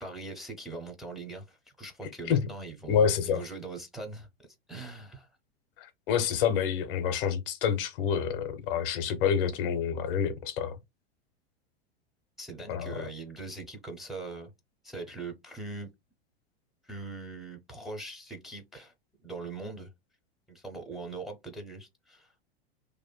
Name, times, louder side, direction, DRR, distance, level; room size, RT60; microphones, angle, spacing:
voice 1, 0.0-5.3 12.4-14.5 14.8-15.9 16.8-18.9 19.2-19.9 20.5-22.3, right 3 dB, ahead, 0.7 m, -41 dB
voice 2, 2.9-3.4 5.8-10.7 12.7-13.0, left 7 dB, 55° left, 0.7 m, -28 dB
2.7 x 2.4 x 2.2 m
hypercardioid pair, 95°, 32 cm